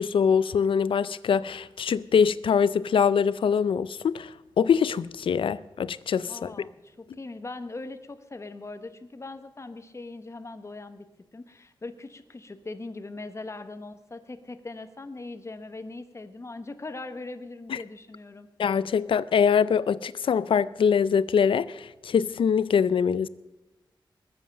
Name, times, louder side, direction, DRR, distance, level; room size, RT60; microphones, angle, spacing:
voice 1, 0.0-4.3 4.6-6.5 17.7-17.8 18.6-23.3, left 7 dB, 90° left, 0.5 m, -23 dB
voice 2, 6.3-11.1 11.3-18.5, left 2 dB, 35° left, 1.1 m, -40 dB
21.0 x 7.6 x 6.7 m
wide cardioid pair, 85°, 9 cm